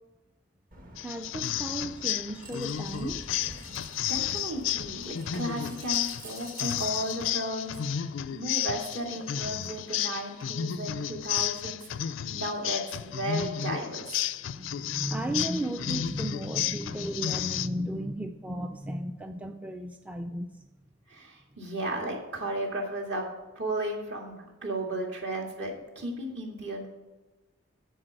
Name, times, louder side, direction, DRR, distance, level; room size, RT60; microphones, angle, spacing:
sound 1, 0.7-8.1, right 2 dB, 45° right, 1.3 m, -48 dB
sound 2, 1.0-17.7, left 10 dB, 75° left, 0.4 m, -32 dB
voice 1, 1.0-3.3 14.5-20.7, right 1 dB, 5° right, 6 dB, 0.4 m, -34 dB
voice 2, 4.1-7.8 8.3-11.9 12.3-14.2 21.1-23.3 23.6-26.9, right 1 dB, 60° right, 0 dB, 2.1 m, -34 dB
9.9 x 4.7 x 7.8 m, 1.1 s
head